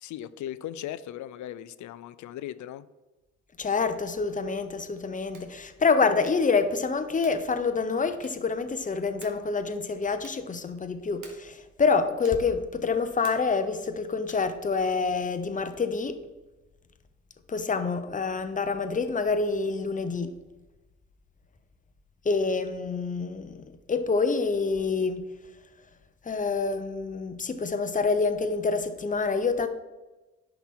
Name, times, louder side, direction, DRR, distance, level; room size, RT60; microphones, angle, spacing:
voice 1, 0.0-2.8, left 11 dB, 70° left, 15 dB, 0.5 m, -38 dB
voice 2, 3.6-16.2 17.5-20.3 22.2-25.3 26.2-29.7, left 4 dB, 25° left, 9 dB, 0.8 m, -27 dB
sound 1, 5.2-5.6 6.2-6.6 7.2-7.5 8.2-8.6 9.2-9.5 10.2-10.5 11.2-11.6 12.2-12.6 13.2-13.6 14.2-14.6, right 4 dB, 75° right, 1.7 m, -52 dB
10.5 x 5.8 x 3.7 m, 1.1 s
cardioid pair, 90°, 30 cm